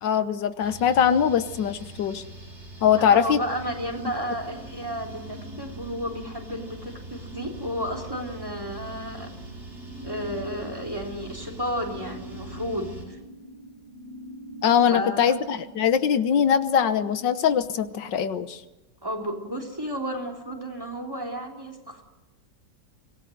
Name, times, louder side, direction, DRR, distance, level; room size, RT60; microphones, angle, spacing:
voice 1, 0.0-2.2 2.8-3.4 14.6-18.6, left 8 dB, 85° left, 12 dB, 1.7 m, -22 dB
sound 1, 0.6-13.0, right 2 dB, 40° right, 5.8 m, -43 dB
sound 2, 2.8-17.5, equal, 60° left, 4.3 m, -45 dB
voice 2, 3.0-9.3 10.0-13.2 14.9-15.3 19.0-22.0, equal, 10° right, 1 dB, 3.5 m, -32 dB
25.0 x 18.0 x 8.0 m, 1.1 s
omnidirectional pair, 1.9 m